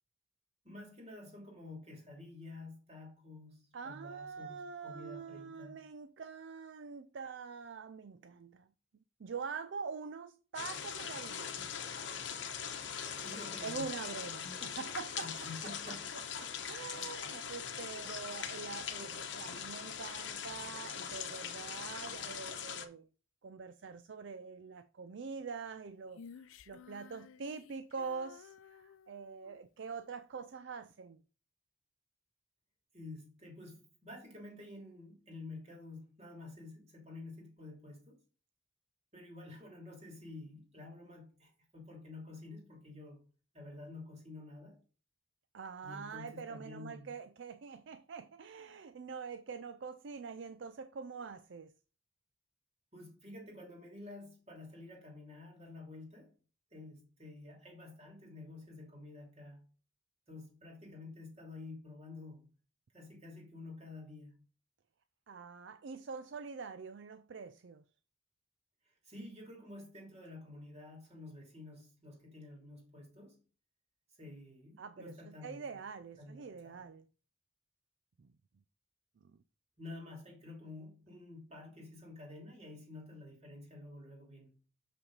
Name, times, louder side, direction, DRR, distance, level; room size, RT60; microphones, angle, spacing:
voice 1, 0.6-5.9 13.1-14.0 15.2-16.5 32.9-38.2 39.1-43.3 43.5-44.8 45.8-47.1 52.9-56.3 56.7-59.7 60.3-62.5 62.9-64.4 68.8-73.4 74.1-75.8 76.2-76.9 79.8-84.6, left 2 dB, 30° right, 2.9 m, -50 dB
voice 2, 3.7-8.7 9.2-11.6 13.6-15.5 15.9-16.0 16.4-23.1 23.4-31.2 45.5-51.7 65.3-67.8 74.8-77.1 78.2-78.3, right 5 dB, 60° right, 0.4 m, -45 dB
sound 1, 10.6-22.9, left 7 dB, 60° left, 1.0 m, -41 dB
Female singing, 26.1-29.7, left 6 dB, 80° left, 0.5 m, -55 dB
6.8 x 5.8 x 3.9 m
head